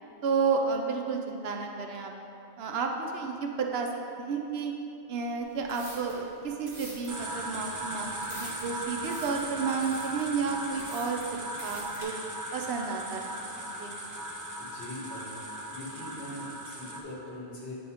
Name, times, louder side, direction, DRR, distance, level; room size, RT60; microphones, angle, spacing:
voice 1, 0.2-2.1 2.6-3.9 4.2-4.7 5.1-11.2 11.6-12.1 12.5-13.4 13.8-13.9, right 5 dB, 70° right, 2 dB, 0.8 m, -31 dB
sound 1, 5.5-12.0, right 1 dB, 40° right, 1.7 m, -48 dB
sound 2, 7.1-17.0, right 1 dB, 25° right, 0.4 m, -38 dB
voice 2, 14.6-17.7, left 1 dB, 70° left, -6 dB, 1.8 m, -42 dB
9.1 x 3.1 x 4.9 m, 2.8 s
omnidirectional pair, 1.1 m